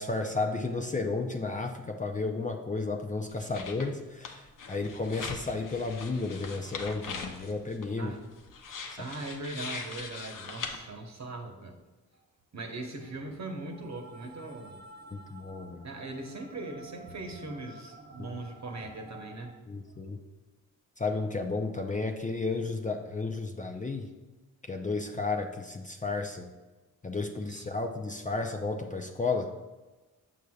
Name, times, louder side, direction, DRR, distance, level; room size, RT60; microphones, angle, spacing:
voice 1, 0.0-8.1 9.0-9.1 15.1-15.9 18.2-18.4 19.7-20.2 21.0-24.1 24.7-26.5 27.0-29.5, left 3 dB, 20° left, 3 dB, 0.5 m, -33 dB
sound 1, 3.3-3.9 4.2-10.8, left 5 dB, 60° left, 0.8 m, -41 dB
voice 2, 9.0-11.8 12.5-14.8 15.8-19.5 27.5-27.7, right 2 dB, 50° right, 3 dB, 1.1 m, -40 dB
sound 2, 13.0-19.5, right 2 dB, 15° right, 1.0 m, -51 dB
6.9 x 6.1 x 2.4 m, 1.2 s
cardioid pair, 55°, 36 cm